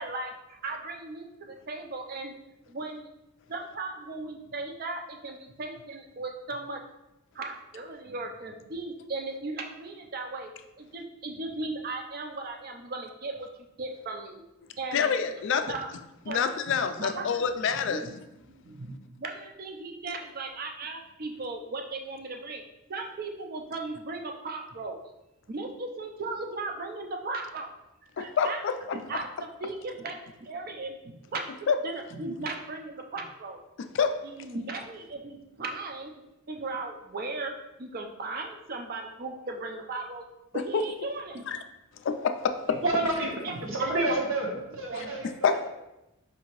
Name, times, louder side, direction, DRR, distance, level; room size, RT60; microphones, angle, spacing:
voice 1, 0.0-2.3 2.7-3.1 3.5-6.8 7.3-10.5 10.8-13.5 13.8-14.4 14.8-15.1 15.7-15.9 16.2-16.4 16.7-16.8 17.0-17.5 17.7-18.0 18.5-22.6 22.9-25.0 25.5-27.7 28.2-28.6 28.9-33.6 34.2-36.1 36.5-40.2 40.5-41.4 43.0-43.1 43.4-43.6 45.0-45.1, right 3 dB, 45° right, 3 dB, 0.5 m, -37 dB
voice 2, 14.9-15.7 16.3-18.0 28.2-28.7 31.7-31.8 33.9-34.1 40.7-40.8 41.5-41.6 42.0-42.8 45.4-45.7, left 6 dB, 60° left, 8 dB, 0.3 m, -26 dB
voice 3, 42.8-43.3 43.6-45.7, right 2 dB, 70° right, -1 dB, 0.9 m, -29 dB
5.1 x 2.8 x 2.9 m, 0.93 s
head